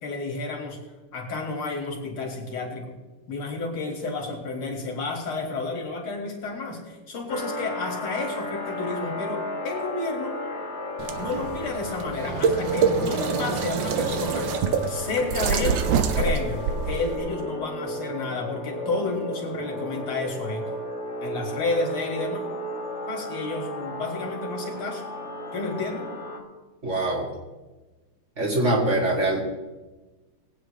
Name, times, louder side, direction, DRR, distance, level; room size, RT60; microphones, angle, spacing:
voice 1, 0.0-0.8 1.1-2.9 3.3-10.4 11.2-14.5 14.9-15.8 16.1-20.7 21.2-22.4 23.1-25.0 25.5-26.1, left 3 dB, 75° left, 1 dB, 2.9 m, -31 dB
sound 1, 7.3-26.4, left 1 dB, 40° left, 1.2 m, -34 dB
sound 2, 11.0-17.2, right 6 dB, 65° right, 1.4 m, -26 dB
voice 2, 26.8-27.3 28.4-29.4, right 1 dB, 35° right, -2 dB, 2.4 m, -23 dB
20.5 x 8.8 x 3.2 m, 1.2 s
omnidirectional pair, 2.3 m